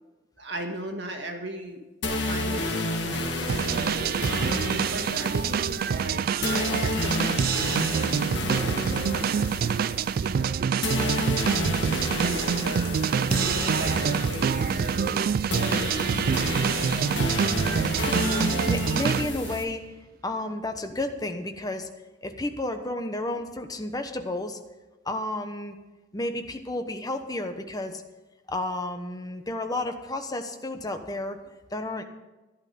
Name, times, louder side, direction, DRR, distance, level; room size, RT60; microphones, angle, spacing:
voice 1, 0.4-1.8 2.2-4.2 4.9-7.9 8.2-9.5 10.2-11.8 12.2-15.2 15.7-16.5, right 1 dB, 75° right, 3 dB, 1.9 m, -38 dB
sound 1, 2.0-19.6, left 2 dB, 75° left, 1.7 m, -31 dB
sound 2, 3.5-19.6, right 7 dB, 55° right, 0.3 m, -26 dB
voice 2, 12.5-12.8 17.6-20.0 20.2-21.9 22.2-24.6 25.0-25.8 26.1-28.0 28.5-31.4 31.7-32.0, left 2 dB, 20° left, 6 dB, 1.0 m, -32 dB
12.0 x 11.0 x 5.4 m, 1.1 s
head